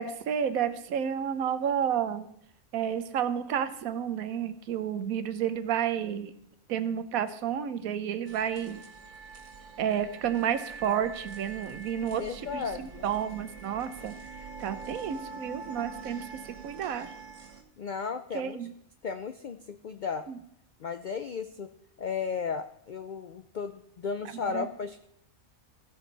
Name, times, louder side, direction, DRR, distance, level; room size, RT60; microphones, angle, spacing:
voice 1, 0.0-2.3 2.7-6.3 6.7-8.8 9.8-14.1 14.6-16.3 16.6-17.1 18.3-18.7 20.3-20.4 24.4-24.7, right 9 dB, 85° right, 11 dB, 1.2 m, -31 dB
sound 1, 8.3-17.6, right 4 dB, 60° right, 1.5 m, -44 dB
voice 2, 12.2-13.1 17.8-18.6 19.0-20.3 20.8-21.7 22.0-25.1, left 6 dB, 80° left, 9 dB, 0.4 m, -35 dB
15.5 x 6.3 x 3.9 m, 0.72 s
omnidirectional pair, 1.4 m